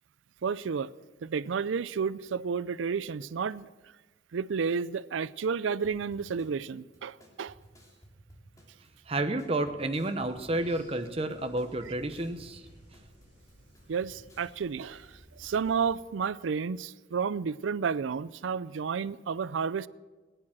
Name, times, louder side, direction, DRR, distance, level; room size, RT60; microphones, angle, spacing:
voice 1, 0.4-0.9 1.2-3.7 4.3-7.6 13.9-19.9, right 6 dB, 85° right, 0.4 m, -31 dB
sound 1, 5.8-14.5, right 1 dB, 15° left, 2.8 m, -56 dB
voice 2, 9.1-12.6, right 2 dB, 30° right, 0.8 m, -30 dB
sound 2, 10.1-16.0, equal, 30° left, 7.0 m, -57 dB
16.5 x 10.0 x 7.6 m
head